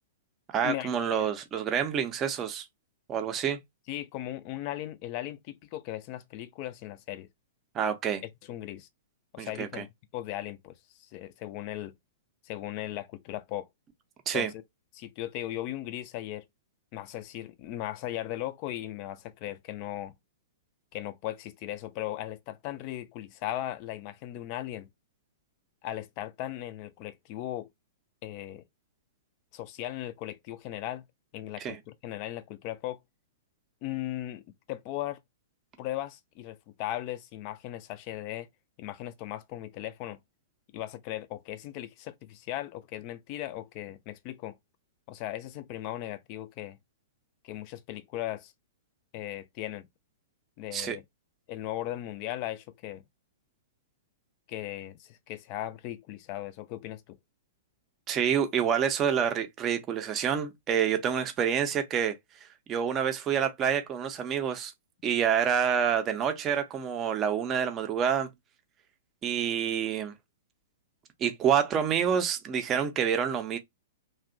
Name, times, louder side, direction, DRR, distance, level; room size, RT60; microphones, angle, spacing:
voice 1, 0.5-2.6 3.1-3.6 7.7-8.2 9.4-9.8 14.3-14.5 31.6-31.8 50.7-51.0 58.1-62.2 62.7-64.7 65.0-68.3 69.2-70.1 71.2-73.6, right 8 dB, 25° right, 0.5 m, -27 dB
voice 2, 3.9-7.3 8.5-8.9 9.3-9.9 10.1-10.8 11.1-11.9 12.4-13.7 14.3-14.5 14.9-16.4 16.9-20.1 20.9-24.9 25.8-27.7 28.2-28.6 29.5-31.1 31.3-33.0 33.8-35.2 35.8-38.5 38.8-40.2 40.7-44.6 45.1-46.8 47.4-48.5 49.1-49.9 50.6-51.0 51.5-53.0 54.5-57.2, left 13 dB, 40° left, 0.4 m, -37 dB
2.6 x 2.1 x 2.4 m
figure-of-eight pair, 105°, 0 cm